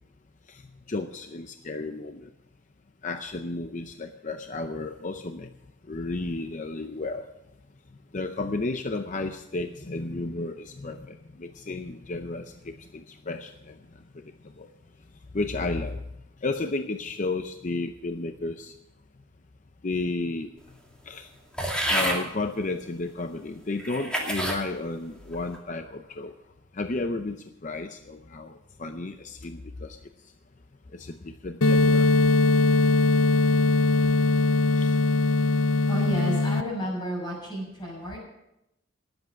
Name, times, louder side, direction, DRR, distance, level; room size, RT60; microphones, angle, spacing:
voice 1, 0.9-2.3 3.0-5.5 5.9-7.3 8.1-13.8 14.6-14.7 15.3-16.0 16.4-18.7 19.8-20.5 21.1-21.3 21.9-26.3 26.7-27.4 27.6-28.5 28.8-30.0 30.9-32.1 34.7-35.0, left 2 dB, 40° left, 7 dB, 0.6 m, -32 dB
sound 1, 21.6-22.2 23.0-23.1 23.8-24.6 25.2-25.6, right 1 dB, 5° left, 2.4 m, -28 dB
sound 2, 31.6-36.6, left 3 dB, 85° left, 0.7 m, -21 dB
voice 2, 35.9-38.2, equal, 25° left, -2 dB, 6.5 m, -32 dB
18.5 x 8.0 x 6.2 m, 0.86 s
head